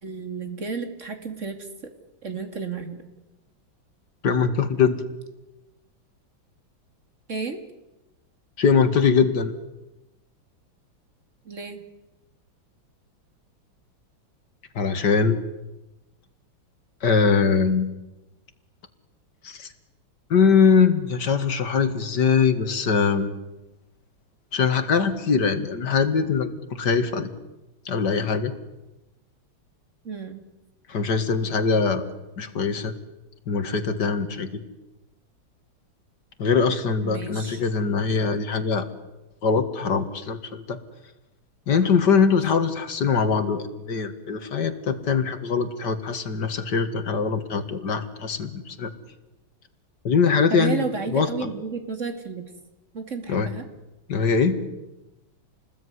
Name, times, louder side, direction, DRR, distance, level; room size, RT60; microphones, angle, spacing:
voice 1, 0.0-1.6 2.2-3.0 7.3-7.6 11.4-11.8 30.0-30.4 37.0-37.6 50.5-52.5 52.9-53.6, right 5 dB, 35° right, 7 dB, 2.8 m, -32 dB
voice 2, 4.2-5.0 8.6-9.5 14.8-15.4 17.0-17.9 19.4-19.7 20.3-23.3 24.5-27.3 27.9-28.5 30.9-32.1 32.4-32.9 33.5-34.6 36.4-38.9 39.4-40.8 41.7-48.9 50.0-51.3 53.3-53.5 54.1-54.6, left 5 dB, 55° left, 9 dB, 2.4 m, -22 dB
28.5 x 20.0 x 9.7 m, 1.0 s
omnidirectional pair, 2.2 m